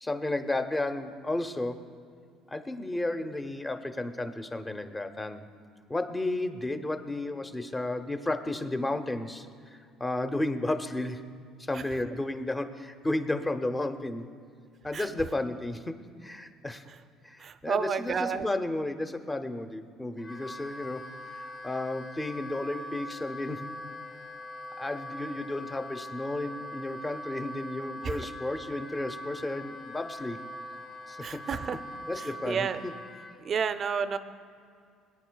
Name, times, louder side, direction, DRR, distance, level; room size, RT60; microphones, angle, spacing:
voice 1, 0.0-1.9 2.5-5.5 5.9-11.3 11.7-14.3 14.8-16.8 17.2-21.1 21.3-23.7 24.8-30.4 31.1-31.4 32.1-32.9, left 2 dB, 15° left, 8 dB, 0.7 m, -33 dB
voice 2, 17.4-18.4 31.2-31.8 32.5-32.8 33.4-34.2, right 6 dB, 45° right, 12 dB, 0.5 m, -30 dB
Wind instrument woodwind instrument, 20.2-33.4, equal, 50° left, 1.9 m, -42 dB
21.0 x 9.2 x 2.3 m, 2.2 s
supercardioid pair, 85°, 0 cm